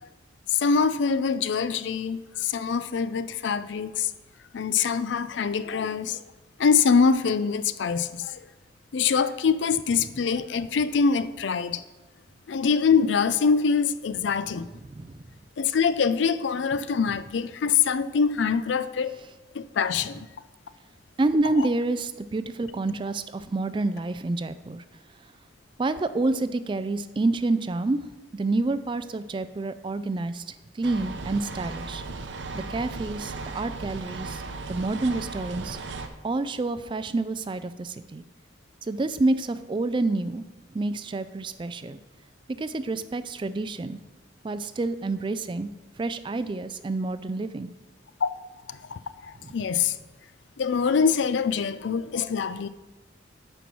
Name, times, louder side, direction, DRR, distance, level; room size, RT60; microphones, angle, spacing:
voice 1, 0.5-4.1 4.5-6.2 6.6-8.4 8.9-11.8 12.5-14.7 15.6-19.1 19.5-20.3 21.6-21.7 48.2-48.3 48.7-50.0 50.6-52.7, left 6 dB, 75° left, 14 dB, 0.4 m, -24 dB
voice 2, 14.9-15.2 21.2-24.8 25.8-28.0 28.3-32.0 32.5-34.4 34.7-35.8 36.2-38.2 38.8-40.4 40.7-42.0 42.6-44.0 44.4-45.7 46.0-47.7 49.4-49.5, right 2 dB, 25° right, 13 dB, 0.3 m, -28 dB
sound 1, 30.8-36.1, right 3 dB, 75° right, 0.7 m, -36 dB
9.2 x 4.6 x 6.0 m, 1.2 s
head